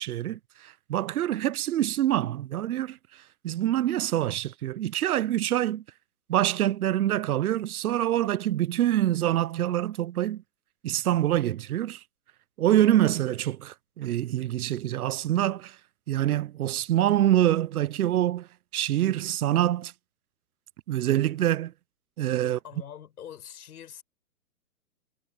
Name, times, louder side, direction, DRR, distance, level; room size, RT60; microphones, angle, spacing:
voice 1, 0.0-5.8 6.3-10.4 10.8-12.0 12.6-15.8 16.1-19.9 20.9-21.7 22.2-22.6, right 12 dB, 65° right, 0.8 m, -25 dB
voice 2, 22.4-24.0, left 9 dB, 70° left, 7.5 m, -44 dB
hypercardioid pair, 145°, 47 cm